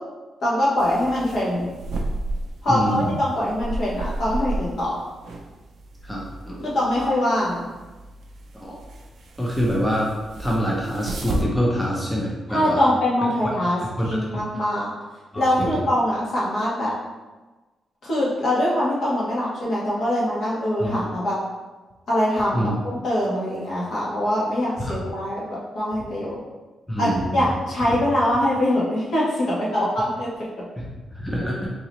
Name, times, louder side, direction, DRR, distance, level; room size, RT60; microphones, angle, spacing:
voice 1, 0.4-1.7 2.6-5.0 6.6-7.6 12.5-14.9 15.3-16.9 18.0-21.4 22.1-22.7 23.0-26.3 27.0-30.3, left 1 dB, 60° left, -7 dB, 1.4 m, -23 dB
sound 1, 0.8-11.4, right 2 dB, 60° right, 0.4 m, -33 dB
voice 2, 2.7-3.1 6.0-6.7 8.6-8.8 9.4-10.1 10.4-12.9 14.0-14.1 15.3-15.7 20.8-21.1 22.5-22.7 24.8-25.0 26.9-27.5 27.9-28.0 30.8-30.9 31.1-31.7, equal, 5° left, -4 dB, 0.5 m, -25 dB
3.8 x 2.8 x 3.0 m, 1.2 s
wide cardioid pair, 135°, 0 cm